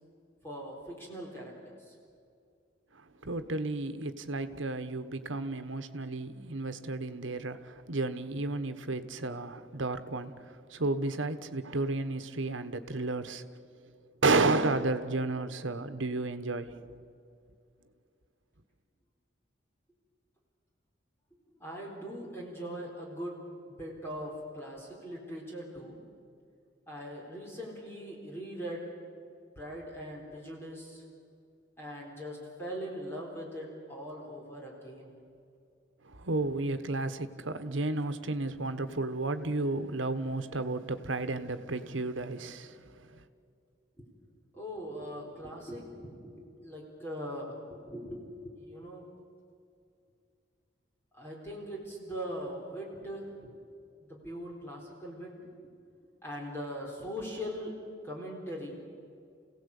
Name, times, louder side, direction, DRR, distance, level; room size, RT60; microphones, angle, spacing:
voice 1, 0.4-2.0 21.6-23.4 23.7-26.0 26.9-28.9 29.6-31.0 31.8-35.2 44.0-44.1 44.5-49.1 51.1-53.6 54.1-55.3 55.6-55.7 56.2-57.7 58.0-58.8, equal, 10° left, 3.9 m, -41 dB
voice 2, 2.9-13.4 14.2-16.8 36.0-43.2, right 2 dB, 80° right, 1.3 m, -32 dB
28.5 x 17.0 x 8.5 m
head